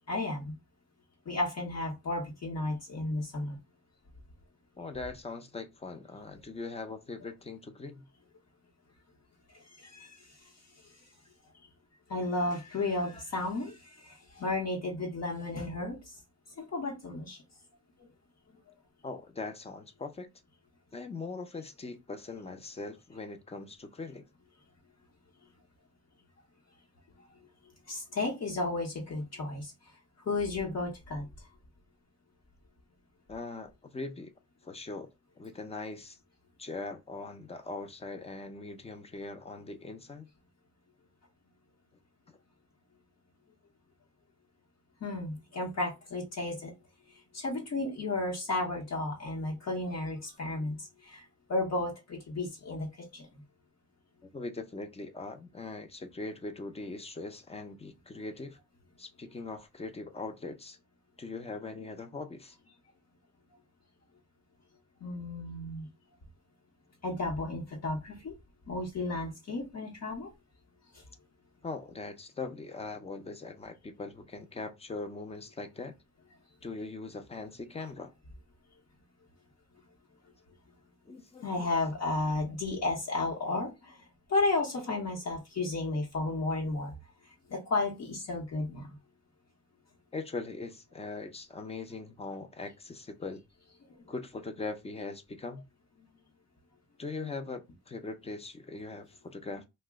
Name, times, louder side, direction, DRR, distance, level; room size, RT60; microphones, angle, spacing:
voice 1, 0.1-0.5 1.3-3.6 9.8-10.1 12.1-13.8 14.1-16.0 16.6-17.4 27.9-29.7 30.3-31.2 45.0-46.7 47.3-51.2 51.5-52.9 53.1-53.3 65.0-65.9 67.0-68.3 68.7-70.3 81.4-83.9 84.3-86.9 87.5-88.9, left 2 dB, 60° left, 1.0 m, -33 dB
voice 2, 4.8-8.1 13.1-13.2 19.0-20.3 20.9-24.3 33.3-34.3 34.6-35.1 35.4-36.2 36.6-40.3 54.3-58.6 59.0-60.8 61.2-62.6 71.6-75.9 76.6-78.1 81.1-81.7 90.1-93.4 94.1-95.6 97.0-99.6, left 3 dB, 20° left, 0.5 m, -41 dB
2.9 x 2.1 x 3.5 m
wide cardioid pair, 120°, 30 cm